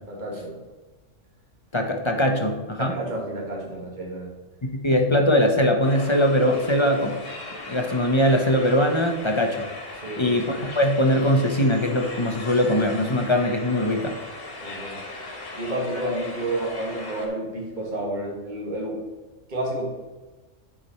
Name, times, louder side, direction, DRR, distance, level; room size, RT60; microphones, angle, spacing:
voice 1, 0.1-0.6 2.8-4.3 10.0-10.3 14.6-15.0 15.6-19.0 19.5-19.9, right 1 dB, 35° right, -1 dB, 1.8 m, -30 dB
voice 2, 1.7-2.9 4.8-7.2 7.7-9.7 10.2-14.2, equal, 25° left, 2 dB, 0.7 m, -21 dB
sound 1, 5.8-17.3, left 2 dB, 50° left, 1.6 m, -38 dB
9.5 x 5.0 x 4.2 m, 1.2 s
omnidirectional pair, 1.3 m